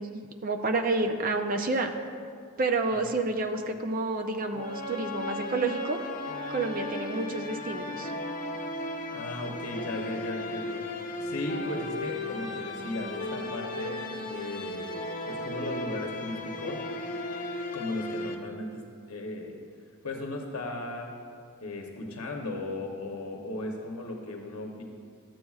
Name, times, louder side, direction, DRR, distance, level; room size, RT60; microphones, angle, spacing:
voice 1, 0.0-1.9 2.6-6.0 6.5-8.1, right 3 dB, 40° right, 5 dB, 0.5 m, -29 dB
sound 1, 4.5-18.3, left 2 dB, 35° left, 0.5 m, -36 dB
voice 2, 9.1-10.8 11.2-14.9 15.2-16.8 17.7-18.8 19.1-19.6 20.0-21.1 21.6-24.8, left 2 dB, 80° left, 1 dB, 0.8 m, -36 dB
13.0 x 7.6 x 2.4 m, 2.2 s
head